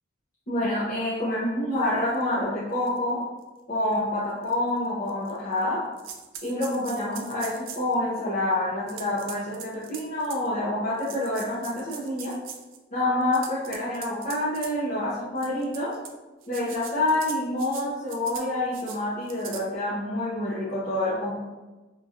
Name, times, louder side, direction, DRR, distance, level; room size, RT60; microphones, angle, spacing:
voice 1, 0.5-3.2 3.7-5.8 6.4-12.3 12.9-15.9 16.5-21.4, left 1 dB, 40° left, -11 dB, 0.7 m, -27 dB
sound 1, 2.1-2.2 2.9-3.0 3.4-3.5 4.4-4.5 5.1-5.6 6.0-7.9 8.9-10.5 11.0-12.8 13.2-14.7 15.4-16.1 16.4-17.8 18.1-18.5 18.7-19.0 19.3-19.6, right 7 dB, 70° right, 0.4 m, -41 dB
3.0 x 2.7 x 2.4 m, 1.2 s
head